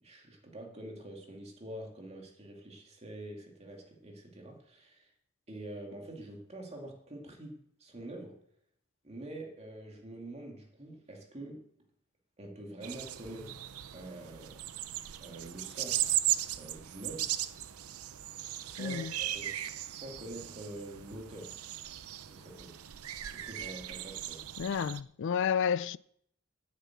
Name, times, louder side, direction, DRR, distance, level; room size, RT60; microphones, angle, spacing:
voice 1, 0.0-5.1 5.5-8.4 9.0-11.7 12.4-13.6 13.9-14.6 15.2-16.2 16.5-17.3 18.5-21.6 22.3-22.8 23.3-24.4, right 1 dB, 30° right, 2.3 m, -46 dB
sound 1, 12.8-25.0, right 13 dB, 80° right, 0.6 m, -37 dB
voice 2, 18.8-19.1 24.6-26.0, left 7 dB, 55° left, 0.3 m, -31 dB
9.3 x 7.5 x 8.4 m
head